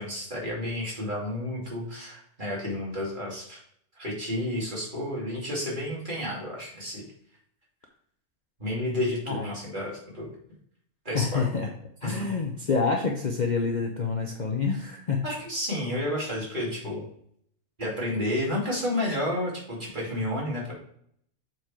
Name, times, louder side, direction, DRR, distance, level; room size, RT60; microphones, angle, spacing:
voice 1, 0.0-3.6 4.0-7.0 8.6-10.3 11.0-11.5 12.0-12.3 15.2-17.1 17.8-20.7, left 1 dB, 40° right, -4 dB, 2.7 m, -31 dB
voice 2, 11.1-11.7 12.0-15.3, left 5 dB, 45° left, 2 dB, 0.7 m, -27 dB
7.1 x 4.6 x 4.4 m, 0.67 s
omnidirectional pair, 1.3 m